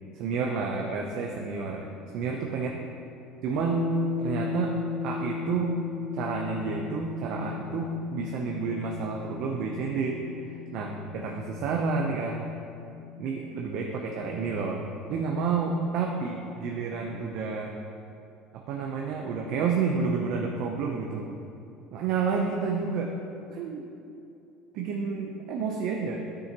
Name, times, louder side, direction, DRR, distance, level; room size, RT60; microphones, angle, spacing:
voice 1, 0.1-1.9 2.1-2.7 3.4-3.8 4.2-4.7 5.0-5.8 6.1-10.2 10.5-12.4 13.2-17.7 18.5-21.3 21.9-23.1 23.5-23.8 24.7-26.2, right 5 dB, 65° right, 0 dB, 0.7 m, -30 dB
sound 1, 3.5-13.3, left 4 dB, 80° left, 0.9 m, -36 dB
9.8 x 6.3 x 3.0 m, 2.6 s
supercardioid pair, 105°, 0 cm